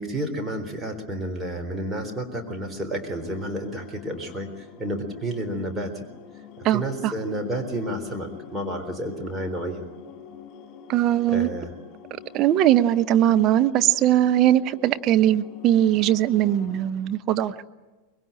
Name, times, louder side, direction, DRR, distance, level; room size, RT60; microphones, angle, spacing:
voice 1, 0.0-5.9 6.7-9.9 11.3-11.7, right 1 dB, 10° right, 3 dB, 3.8 m, -30 dB
sound 1, 3.0-16.8, left 8 dB, 35° left, 6.3 m, -46 dB
voice 2, 6.6-7.1 10.9-11.5 12.3-17.5, right 12 dB, 35° right, 11 dB, 0.9 m, -20 dB
24.5 x 22.5 x 8.9 m, 1.2 s
figure-of-eight pair, 90°, 0 cm